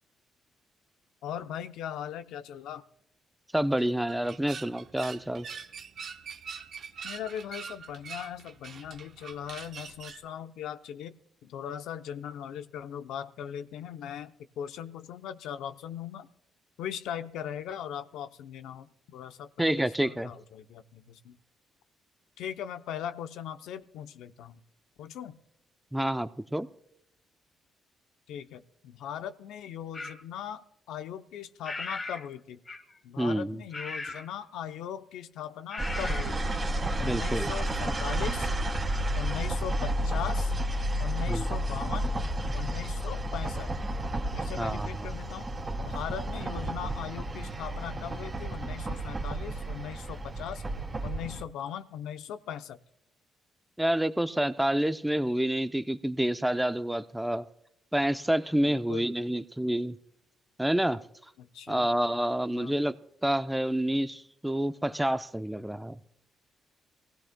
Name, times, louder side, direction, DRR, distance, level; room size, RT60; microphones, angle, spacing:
voice 1, 1.2-2.8 7.0-11.1 11.4-16.3 16.8-21.4 22.4-24.6 25.0-25.4 28.3-32.6 33.0-36.5 37.0-38.5 39.1-40.5 41.0-42.1 42.5-43.7 44.3-45.5 45.8-50.6 51.0-52.8 58.6-59.1 61.4-61.9 62.5-62.8, left 9 dB, 85° left, 0.6 m, -39 dB
voice 2, 3.5-5.5 19.6-20.3 25.9-26.7 33.2-33.6 37.0-37.5 41.3-41.4 44.6-44.9 53.8-57.5 57.9-60.0 60.6-61.0 61.7-62.9 63.2-66.0, right 1 dB, 5° right, 0.5 m, -28 dB
sound 1, 3.7-10.3, right 6 dB, 60° right, 0.9 m, -44 dB
sound 2, 29.9-30.2 31.6-32.3 32.7-33.0 33.7-34.3 35.7-36.3, left 2 dB, 30° left, 1.0 m, -37 dB
sound 3, 35.8-51.4, right 1 dB, 30° right, 2.3 m, -31 dB
23.5 x 16.5 x 2.2 m
cardioid pair, 90°, 0 cm